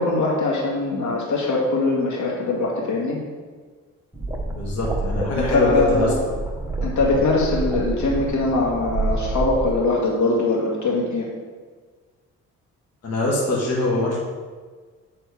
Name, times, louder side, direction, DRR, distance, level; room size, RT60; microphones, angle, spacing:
voice 1, 0.0-3.2 5.3-6.2 6.8-11.3, left 3 dB, 75° left, -3 dB, 1.9 m, -22 dB
sound 1, 4.1-9.7, right 2 dB, 5° right, 1.1 m, -28 dB
voice 2, 4.6-6.3 13.0-14.2, left 2 dB, 55° left, -4 dB, 1.7 m, -23 dB
8.3 x 4.3 x 4.9 m, 1.5 s
cardioid pair, 90°, 30 cm